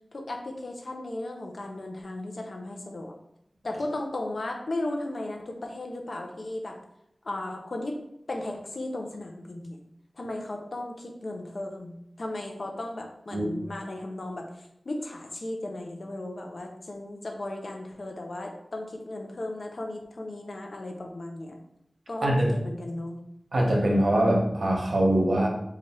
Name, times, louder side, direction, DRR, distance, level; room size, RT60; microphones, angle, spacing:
voice 1, 0.1-3.1 3.6-6.8 7.2-8.0 8.3-9.8 10.2-21.6 22.1-23.2, left 1 dB, 80° left, 2 dB, 0.6 m, -35 dB
voice 2, 23.5-25.5, right 1 dB, 80° right, -1 dB, 0.8 m, -23 dB
3.3 x 2.4 x 4.1 m, 0.79 s
wide cardioid pair, 45°, 0 cm